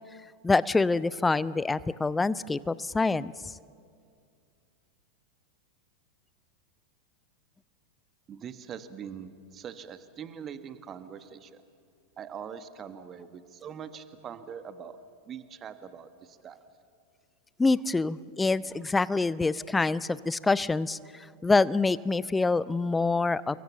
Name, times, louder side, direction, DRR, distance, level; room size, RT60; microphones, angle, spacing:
voice 1, 0.4-3.5 17.6-23.6, left 3 dB, 10° left, 20 dB, 0.5 m, -26 dB
voice 2, 8.3-11.6 12.2-15.0 15.3-16.6, right 7 dB, 25° right, 11 dB, 1.3 m, -42 dB
29.0 x 23.0 x 7.3 m, 2.3 s
figure-of-eight pair, 90°, 0 cm